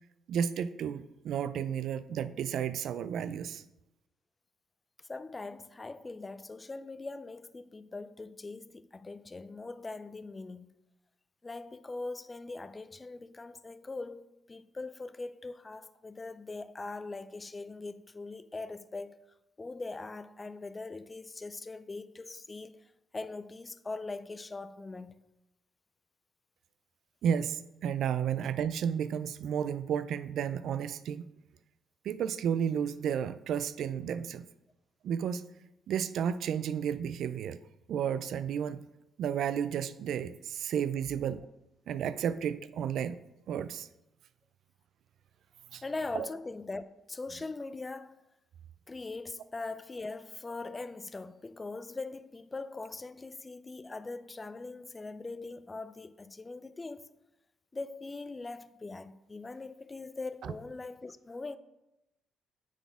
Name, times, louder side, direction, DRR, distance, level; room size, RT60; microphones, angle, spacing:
voice 1, 0.3-3.6 27.2-31.2 32.0-34.4 35.0-35.4 35.9-37.6 37.9-38.8 39.2-41.5 41.9-43.2 43.5-43.9 45.7-45.8 46.1-46.3 60.4-60.5, right 8 dB, 75° right, 0.3 m, -32 dB
voice 2, 5.0-10.7 11.4-19.2 19.6-25.2 45.8-48.2 48.9-57.1 57.7-61.6, left 3 dB, 25° left, 0.4 m, -41 dB
9.3 x 4.2 x 3.5 m
cardioid pair, 90°, 0 cm